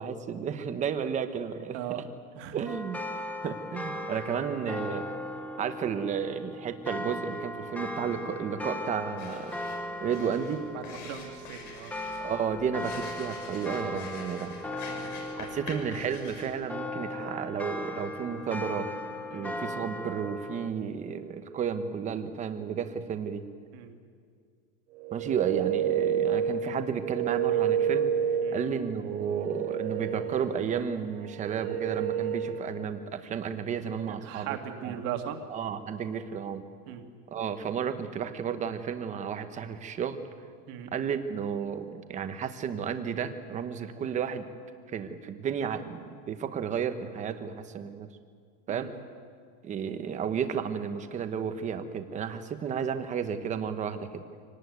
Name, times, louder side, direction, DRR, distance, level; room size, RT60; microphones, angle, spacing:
voice 1, 0.0-1.8 2.5-3.0 3.4-5.1 5.6-9.5 10.0-10.6 12.2-14.5 15.4-18.9 19.3-23.4 25.1-28.1 28.5-34.6 34.8-34.9 35.5-36.6 37.3-40.2 40.9-44.5 44.9-48.1 48.7-48.9 49.6-54.2, right 7 dB, 15° right, 9 dB, 1.0 m, -32 dB
sound 1, 2.6-20.7, left 1 dB, 5° left, 0.6 m, -38 dB
sound 2, 9.2-16.5, left 4 dB, 90° left, 7.0 m, -46 dB
voice 2, 10.7-11.9 14.9-15.1 19.3-19.6 23.7-24.0 28.4-28.6 34.1-35.4 36.9-37.1 40.7-40.9 48.7-48.9, right 10 dB, 45° right, 6 dB, 2.1 m, -38 dB
sound 3, 25.0-32.9, right 8 dB, 90° right, 3.1 m, -30 dB
24.5 x 18.5 x 9.5 m, 2.1 s
supercardioid pair, 175°, 44 cm